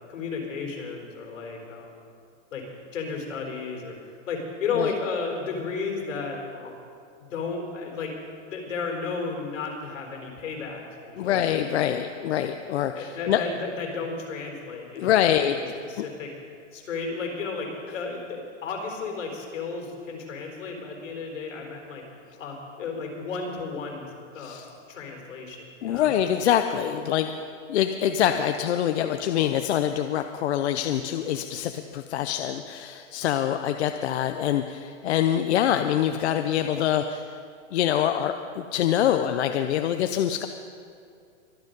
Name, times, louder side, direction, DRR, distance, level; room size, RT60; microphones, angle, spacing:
voice 1, 0.1-2.1 2.5-2.6 2.9-3.9 4.3-6.8 7.2-8.1 8.5-11.5 12.9-16.3 16.7-22.0 22.4-24.1 24.3-26.2, left 4 dB, 75° left, 1 dB, 4.0 m, -33 dB
voice 2, 11.2-13.4 15.0-15.6 16.0-16.1 24.4-24.7 25.8-27.4 27.7-37.3 37.7-40.5, left 10 dB, 60° left, 8 dB, 0.7 m, -25 dB
23.5 x 8.1 x 5.3 m, 2.4 s
hypercardioid pair, 160°, 38 cm